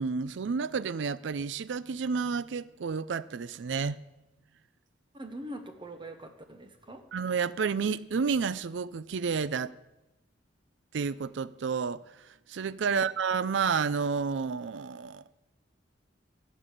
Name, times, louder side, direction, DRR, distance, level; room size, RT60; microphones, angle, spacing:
voice 1, 0.0-4.0 7.1-9.7 10.9-15.2, right 5 dB, 85° right, 0.4 m, -30 dB
voice 2, 5.1-7.1 12.9-13.1, right 1 dB, 25° right, 1.0 m, -43 dB
15.0 x 7.4 x 6.7 m
head